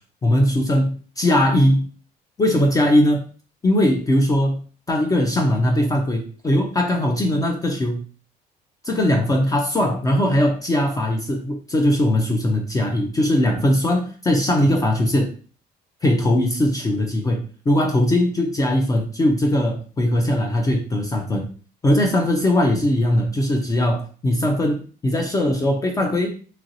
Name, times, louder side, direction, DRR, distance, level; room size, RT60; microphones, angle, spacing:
voice 1, 0.2-1.9 2.4-3.3 3.6-4.6 4.9-8.0 8.8-15.3 16.0-21.5 21.8-26.3, left 1 dB, 20° left, 2 dB, 0.4 m, -20 dB
2.9 x 2.7 x 2.6 m, 0.40 s
cardioid pair, 110°, 17 cm